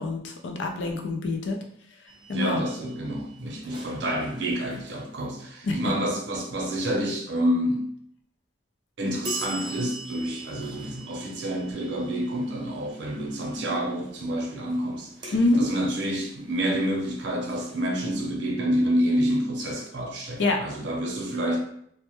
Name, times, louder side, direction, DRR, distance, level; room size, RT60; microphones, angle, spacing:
voice 1, 0.0-1.6 2.3-2.6 5.6-5.8 15.3-15.7 20.4-20.6, left 2 dB, 80° left, 3 dB, 0.4 m, -25 dB
sound 1, 2.1-5.8 9.2-19.9, right 1 dB, 25° right, 0.5 m, -44 dB
voice 2, 2.3-7.9 9.0-21.6, equal, 70° right, 0 dB, 0.6 m, -28 dB
2.1 x 2.1 x 2.9 m, 0.67 s
head